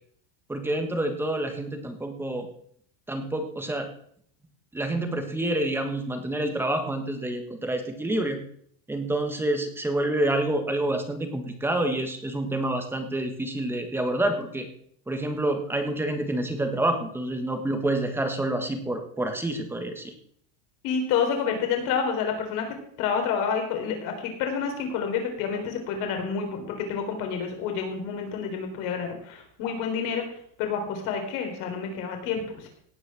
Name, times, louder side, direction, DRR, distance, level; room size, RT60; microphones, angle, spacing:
voice 1, 0.5-2.5 3.1-3.9 4.7-8.4 8.9-14.7 15.1-20.1, right 1 dB, 5° right, 6 dB, 1.4 m, -28 dB
voice 2, 20.8-22.7 23.0-30.2 30.6-32.7, left 6 dB, 50° left, 4 dB, 4.0 m, -29 dB
18.0 x 6.3 x 6.3 m, 0.63 s
cardioid pair, 170°, 40 cm